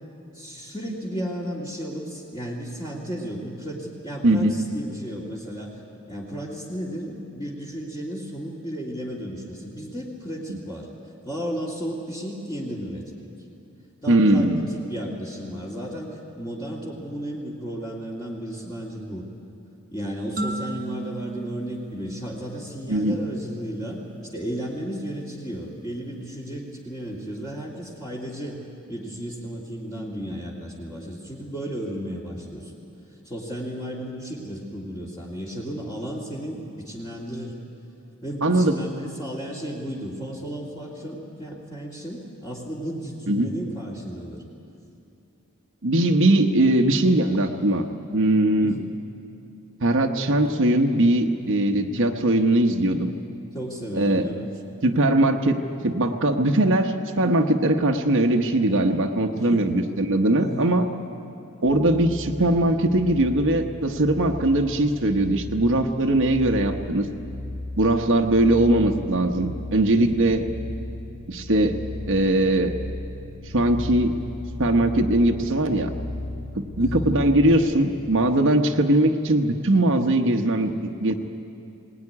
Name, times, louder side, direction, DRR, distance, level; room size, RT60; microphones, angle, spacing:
voice 1, 0.3-5.8 6.1-10.9 11.2-13.3 14.0-19.2 19.9-24.0 24.3-28.6 28.9-32.7 33.2-37.5 38.2-44.4 48.6-49.0 53.5-54.5 59.3-59.7 60.4-60.7 70.0-70.2 76.8-77.1, equal, 20° left, -6 dB, 2.3 m, -34 dB
voice 2, 4.2-4.5 10.5-10.6 14.1-14.6 22.9-23.2 38.4-38.8 43.3-43.5 45.8-47.8 48.1-48.8 49.8-53.1 53.9-54.2 54.8-60.9 61.6-67.1 67.8-70.4 71.3-71.8 72.1-72.7 73.5-74.1 74.6-75.9 76.6-80.7 81.0-81.1, right 1 dB, 60° right, 3 dB, 1.2 m, -20 dB
sound 1, 20.4-23.0, right 2 dB, 35° right, 1.3 m, -34 dB
sound 2, 61.6-77.8, left 1 dB, 40° left, 2.8 m, -36 dB
20.5 x 19.0 x 9.8 m, 2.6 s
head